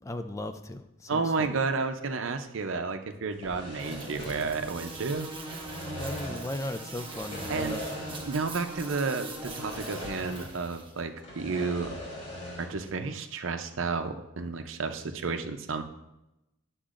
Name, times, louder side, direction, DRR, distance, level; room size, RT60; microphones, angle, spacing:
voice 1, 0.0-1.5 5.9-7.9, left 1 dB, 15° left, 7 dB, 0.3 m, -37 dB
voice 2, 1.1-5.3 7.5-7.8 8.2-12.0 12.6-15.8, right 4 dB, 70° right, 7 dB, 0.6 m, -31 dB
sound 1, 3.3-5.1 5.3-6.6 7.1-8.5 8.7-8.8 9.4-10.7 11.0-12.8, equal, 35° left, 3.1 m, -40 dB
sound 2, 3.8-10.9, right 2 dB, 25° right, 1.1 m, -41 dB
10.0 x 7.1 x 2.5 m, 0.92 s
head